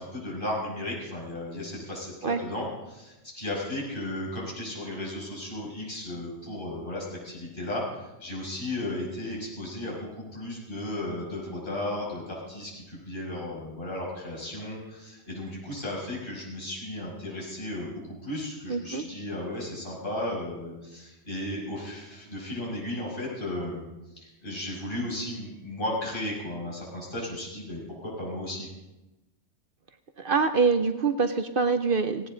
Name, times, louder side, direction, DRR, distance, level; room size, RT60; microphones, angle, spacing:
voice 1, 0.0-7.8 8.2-23.9 24.2-28.7, left 1 dB, 50° left, -5 dB, 6.2 m, -35 dB
voice 2, 18.7-19.0 30.2-32.3, right 4 dB, 55° right, 8 dB, 0.9 m, -25 dB
18.0 x 17.5 x 3.9 m, 1.0 s
omnidirectional pair, 1.1 m